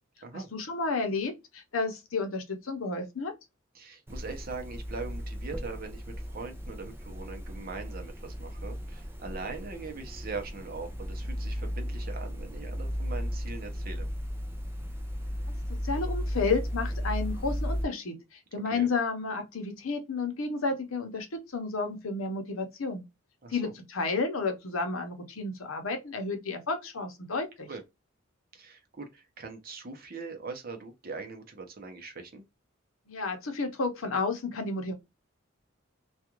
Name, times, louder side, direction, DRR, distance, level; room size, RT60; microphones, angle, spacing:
voice 1, 0.3-3.3 15.7-23.0 23.5-27.7 33.1-34.9, left 4 dB, 80° left, 0.8 m, -31 dB
voice 2, 3.7-14.1 18.6-18.9 23.4-23.7 27.7-27.8 28.5-32.4, right 4 dB, 45° right, 0.7 m, -41 dB
sound 1, 4.1-17.8, equal, 10° right, 0.4 m, -35 dB
2.5 x 2.3 x 2.9 m
head